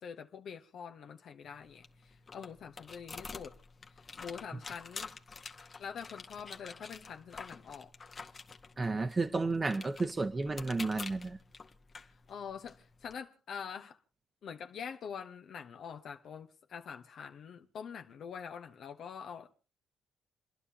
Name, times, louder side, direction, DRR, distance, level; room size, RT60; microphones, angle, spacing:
voice 1, 0.0-3.6 3.9-5.2 5.8-7.9 12.3-14.0 14.4-19.6, left 7 dB, 65° left, 1.0 m, -45 dB
sound 1, 1.4-13.1, left 4 dB, 35° left, 1.3 m, -49 dB
voice 2, 8.8-11.4, right 3 dB, 25° right, 1.0 m, -32 dB
29.0 x 11.0 x 2.8 m
cardioid pair, 90°, 0 cm